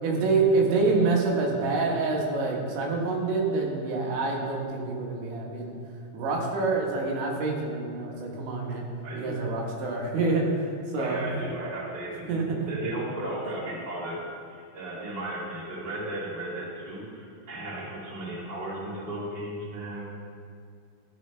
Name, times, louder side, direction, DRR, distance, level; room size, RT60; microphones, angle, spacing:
voice 1, 0.0-5.7 6.1-8.8 9.1-11.3 12.3-12.7, right 3 dB, 75° right, -2 dB, 3.6 m, -27 dB
voice 2, 9.0-9.4 10.9-12.4 12.7-14.2 14.5-20.1, right 1 dB, 35° right, -7 dB, 0.6 m, -35 dB
14.0 x 7.9 x 3.3 m, 2.3 s
omnidirectional pair, 5.4 m